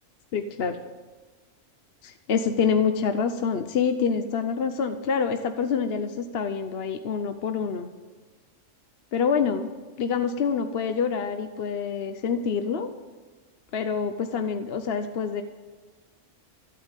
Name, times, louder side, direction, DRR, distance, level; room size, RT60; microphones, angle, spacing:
voice 1, 0.3-0.8 2.0-7.9 9.1-9.7 10.0-12.9 13.7-15.4, left 6 dB, 55° left, 8 dB, 0.9 m, -26 dB
14.0 x 8.8 x 9.0 m, 1.3 s
omnidirectional pair, 1.3 m